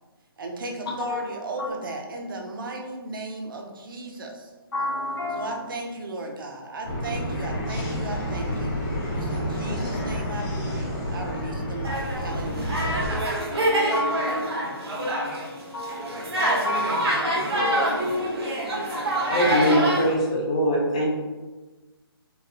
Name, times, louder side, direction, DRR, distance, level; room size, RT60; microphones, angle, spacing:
voice 1, 0.4-4.5 5.3-13.0, right 2 dB, 55° right, 2 dB, 0.6 m, -36 dB
voice 2, 4.7-5.6 13.7-19.2, left 1 dB, 65° left, -2 dB, 1.0 m, -33 dB
sound 1, 6.8-13.2, equal, 35° left, 1.1 m, -29 dB
sound 2, 11.8-15.5 15.8-20.1, right 1 dB, 80° right, 1.0 m, -26 dB
voice 3, 19.0-21.0, equal, 15° left, -3 dB, 0.3 m, -23 dB
4.0 x 2.2 x 2.6 m, 1.2 s
hypercardioid pair, 170°, 13 cm